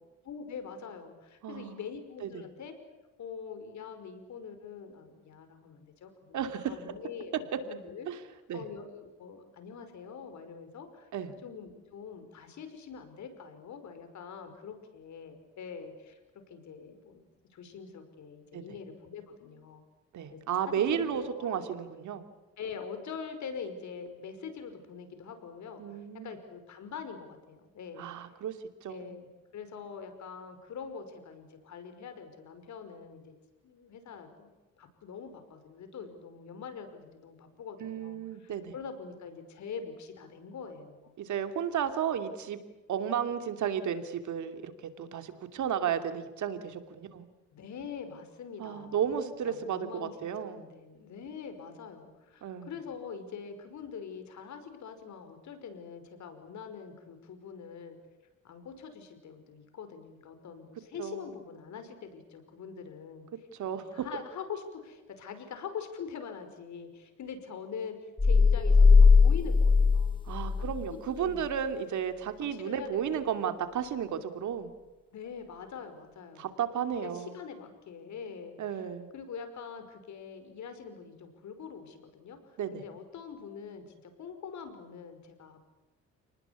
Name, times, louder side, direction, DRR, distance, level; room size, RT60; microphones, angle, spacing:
voice 1, 0.2-2.8 3.2-8.1 8.5-11.1 11.4-16.2 16.5-17.2 17.5-19.8 20.3-21.6 22.6-28.1 28.9-29.3 29.5-33.3 33.6-34.5 34.8-41.1 47.5-49.1 49.4-50.1 50.4-58.0 58.4-63.3 63.6-70.2 70.6-70.9 71.2-71.5 72.5-72.9 73.3-73.4 75.1-76.6 77.0-85.6, left 6 dB, 70° left, 8 dB, 5.5 m, -44 dB
voice 2, 1.4-1.8 2.2-2.4 6.3-6.8 8.1-8.2 8.5-8.6 11.1-11.3 18.5-18.6 20.1-22.3 25.8-26.4 28.0-29.1 37.8-38.7 41.2-42.6 42.9-47.3 48.6-50.6 52.4-52.7 61.0-61.3 63.5-64.1 70.3-74.7 76.4-77.4 78.6-79.1 82.6-82.8, right 8 dB, 75° right, 8 dB, 2.9 m, -33 dB
sound 1, 68.2-70.9, left 4 dB, 15° left, 1.4 m, -20 dB
29.5 x 19.5 x 8.5 m, 1.1 s
cardioid pair, 90°, 30 cm